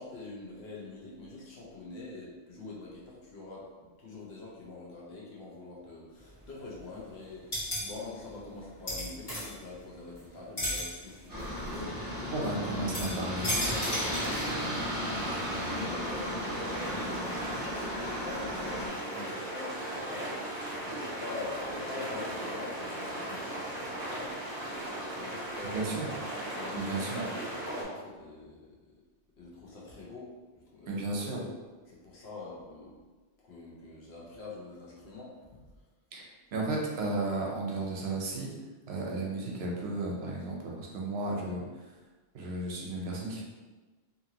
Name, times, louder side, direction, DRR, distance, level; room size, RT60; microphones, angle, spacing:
voice 1, 0.0-3.7 4.0-12.3 12.7-24.4 25.1-26.1 26.4-28.7 29.4-31.5 31.9-33.0 33.4-35.5, left 3 dB, 65° left, -5 dB, 1.0 m, -44 dB
sound 1, 6.2-6.9 7.2-10.2 10.5-15.0 15.4-15.5, equal, 30° left, 1.3 m, -36 dB
Aircraft, 11.3-18.9, equal, 10° right, 0.8 m, -35 dB
voice 2, 12.3-13.5 25.7-26.1 26.8-27.2 30.9-31.4 36.1-36.3 36.5-38.5 38.9-41.6 42.3-43.4, right 2 dB, 70° right, -2 dB, 0.8 m, -33 dB
sound 2, 13.7-27.8, right 1 dB, 40° right, 0.8 m, -37 dB
2.8 x 2.6 x 2.8 m, 1.3 s
omnidirectional pair, 1.2 m